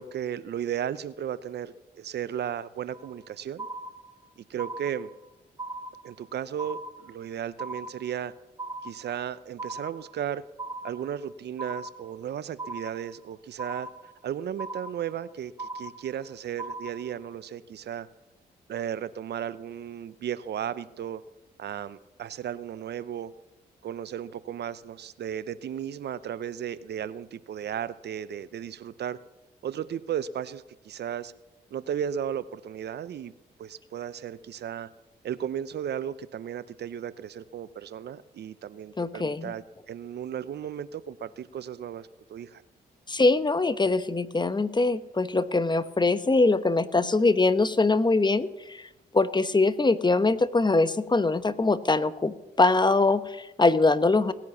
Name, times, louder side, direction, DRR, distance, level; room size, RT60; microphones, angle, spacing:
voice 1, 0.0-3.7 4.4-5.1 6.0-8.3 8.8-10.4 10.8-18.1 18.7-21.2 21.6-23.3 23.8-29.2 29.6-31.3 31.7-33.3 33.6-34.9 35.2-42.6, right 9 dB, 65° right, 16 dB, 0.7 m, -35 dB
sound 1, 2.9-3.3 3.6-4.3 4.6-5.3 5.6-6.3 6.6-7.3 7.6-8.3 8.6-9.3 9.6-10.3 10.6-11.3 11.6-12.3 12.6-13.3 13.6-14.3 14.6-15.3 15.6-16.3 16.6-17.3, right 2 dB, 20° right, 1.5 m, -39 dB
voice 2, 39.0-39.5 43.1-48.9 49.1-54.3, left 3 dB, 25° left, 13 dB, 1.0 m, -23 dB
18.0 x 10.5 x 7.2 m, 1.0 s
supercardioid pair, 55°, 18 cm